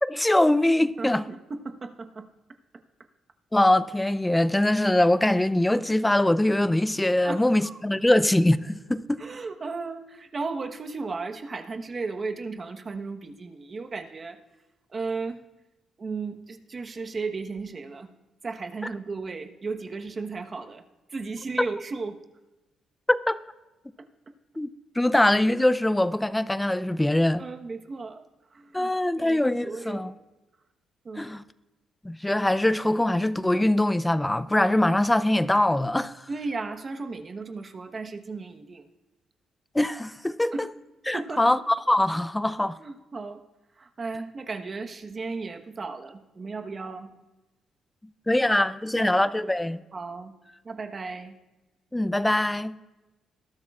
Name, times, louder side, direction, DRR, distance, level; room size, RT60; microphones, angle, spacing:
voice 1, 0.0-1.2 3.5-9.2 21.6-21.7 23.1-23.4 24.6-24.7 25.0-27.4 28.7-30.1 31.2-31.4 32.0-36.2 39.7-40.7 41.1-41.6 41.9-42.8 48.3-49.8 51.9-52.7, left 1 dB, 10° left, 0.5 m, -23 dB
voice 2, 1.0-2.3 7.2-7.8 9.2-14.4 14.9-15.4 16.0-18.1 18.4-20.8 21.1-22.2 27.4-28.2 28.5-28.9 29.2-30.1 31.0-31.3 36.3-38.9 40.5-40.7 41.1-41.4 42.8-43.4 43.8-47.2 48.9-49.1 49.9-50.4 50.6-51.3, right 4 dB, 35° right, 1.1 m, -35 dB
20.0 x 12.5 x 2.4 m
cardioid pair, 90°, 0 cm